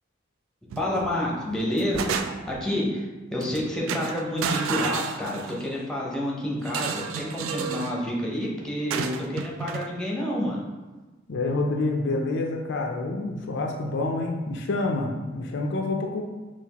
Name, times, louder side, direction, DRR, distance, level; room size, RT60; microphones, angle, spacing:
voice 1, 0.7-3.1 3.3-10.6, left 1 dB, 5° left, -4 dB, 0.7 m, -29 dB
sound 1, 0.7-1.1 1.5-2.6 3.4-3.6 3.9-5.7 6.6-8.0 8.9-9.9, right 6 dB, 80° right, 0.3 m, -31 dB
voice 2, 11.3-16.2, left 2 dB, 60° left, 1 dB, 0.4 m, -27 dB
5.7 x 2.4 x 2.9 m, 1.2 s
head